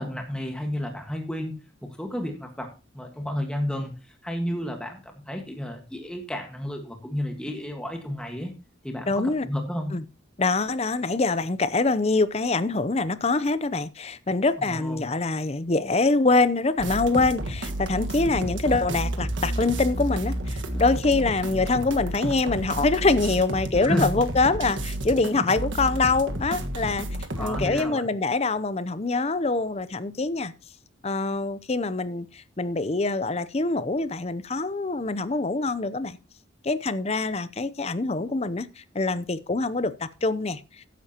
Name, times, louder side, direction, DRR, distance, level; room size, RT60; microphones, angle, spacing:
voice 1, 0.0-8.5 8.8-10.0 14.6-15.0 23.8-24.1 27.4-28.1, left 1 dB, 5° left, 1.5 m, -32 dB
voice 2, 9.1-9.4 9.9-10.0 10.4-27.1 27.4-30.5 31.0-36.2 36.6-40.6, left 3 dB, 30° left, 0.6 m, -24 dB
sound 1, 16.8-27.8, right 1 dB, 65° right, 1.5 m, -31 dB
14.0 x 10.5 x 2.9 m
head